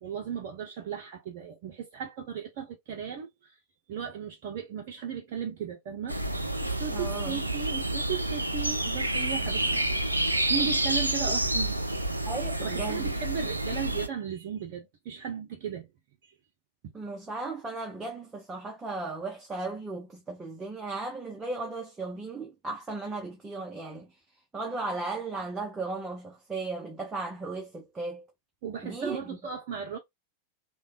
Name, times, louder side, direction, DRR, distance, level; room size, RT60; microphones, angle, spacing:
voice 1, 0.0-3.5 3.9-6.2 6.6-9.7 10.5-11.8 12.6-15.9 16.8-16.9 28.6-30.0, right 7 dB, 50° right, 0.6 m, -36 dB
sound 1, 6.1-14.1, right 1 dB, 85° right, 0.3 m, -29 dB
voice 2, 6.9-7.4 9.7-9.8 12.3-13.1 16.9-24.1 24.5-28.2 28.8-29.4, right 3 dB, 15° right, 0.7 m, -36 dB
3.2 x 2.2 x 2.3 m
figure-of-eight pair, 90°, 0 cm